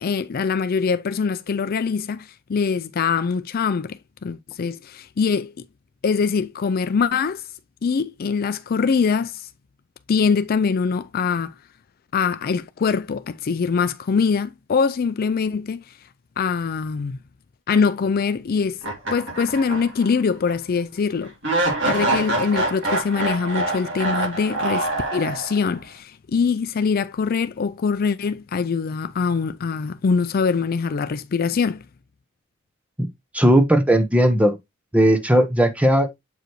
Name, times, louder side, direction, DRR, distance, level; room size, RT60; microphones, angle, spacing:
voice 1, 0.0-5.7 6.0-7.4 7.8-9.5 10.1-11.5 12.1-15.8 16.4-17.2 17.7-18.8 19.1-21.3 21.9-31.8, left 5 dB, 45° left, 0.4 m, -23 dB
sound 1, 18.8-20.1 20.5-20.6 21.4-25.7, right 2 dB, 65° right, 2.9 m, -25 dB
voice 2, 33.3-34.6 34.9-36.2, right 1 dB, 5° right, 0.8 m, -17 dB
7.9 x 4.9 x 3.0 m
head